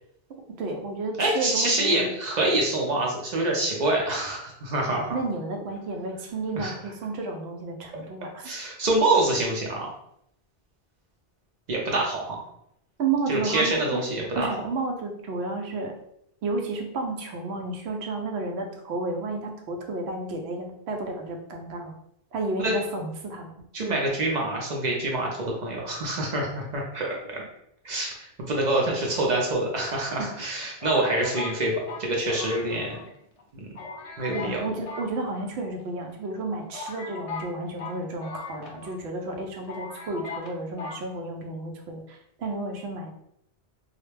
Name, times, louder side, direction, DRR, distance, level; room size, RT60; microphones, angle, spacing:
voice 1, 0.5-2.1 5.1-8.5 13.0-14.0 14.3-15.9 16.4-21.9 22.3-23.5 30.2-30.4 34.3-43.1, right 3 dB, 90° right, 3 dB, 0.8 m, -32 dB
voice 2, 1.2-5.2 6.6-6.7 8.4-9.9 11.7-12.4 13.3-14.5 22.6-22.7 23.7-27.1 27.3-27.4 27.8-32.9 33.5-33.7 34.2-34.6, right 2 dB, 55° right, -1 dB, 0.6 m, -26 dB
sound 1, 29.4-30.1 30.8-33.1 33.4-33.5 33.8-34.6 34.8-35.8 36.4-36.5 36.7-39.0 39.3-39.4 39.7-40.5 40.8-41.0, left 4 dB, 55° left, 0.4 m, -39 dB
2.3 x 2.1 x 3.1 m, 0.75 s
omnidirectional pair, 1.1 m